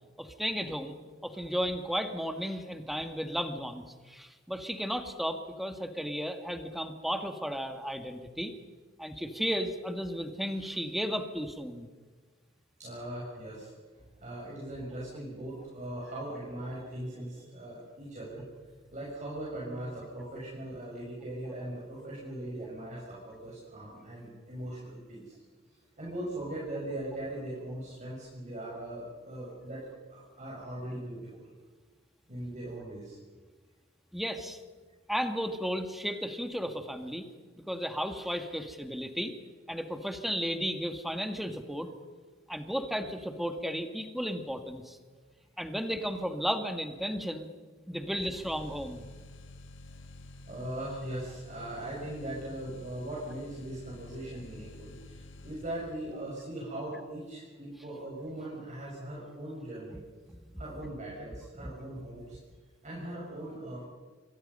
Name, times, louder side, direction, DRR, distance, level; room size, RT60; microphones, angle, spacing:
voice 1, 0.2-1.0 1.2-8.5 9.0-11.9 34.1-34.6 35.1-37.3 37.6-39.3 39.7-41.9 42.5-45.0 45.6-47.5 47.9-49.1 60.3-60.4 61.6-61.7, equal, ahead, 6 dB, 1.9 m, -34 dB
voice 2, 12.8-13.7 14.2-18.4 18.9-25.3 26.0-29.8 30.1-31.5 32.3-33.2 45.1-45.2 48.0-48.1 50.5-60.0 60.6-62.4 62.8-63.9, right 1 dB, 40° right, -5 dB, 6.5 m, -40 dB
sound 1, 48.2-56.2, left 1 dB, 75° left, 1.9 m, -49 dB
26.5 x 24.5 x 5.6 m, 1.4 s
head